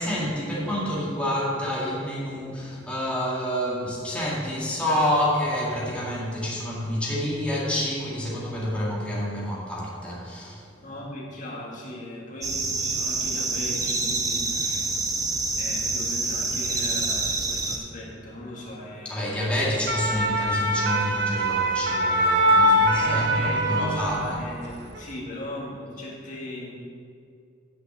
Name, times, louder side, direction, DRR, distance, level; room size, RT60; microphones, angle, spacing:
voice 1, 0.0-10.8 19.1-24.4, equal, 5° left, -6 dB, 1.9 m, -28 dB
voice 2, 10.8-15.0 15.6-19.7 22.9-26.8, left 1 dB, 45° left, -4 dB, 1.9 m, -37 dB
sound 1, 12.4-17.8, right 3 dB, 20° right, 0.8 m, -27 dB
sound 2, 19.7-24.4 24.7-25.0, right 1 dB, 60° right, 0.8 m, -23 dB
9.1 x 5.8 x 7.2 m, 2.4 s
head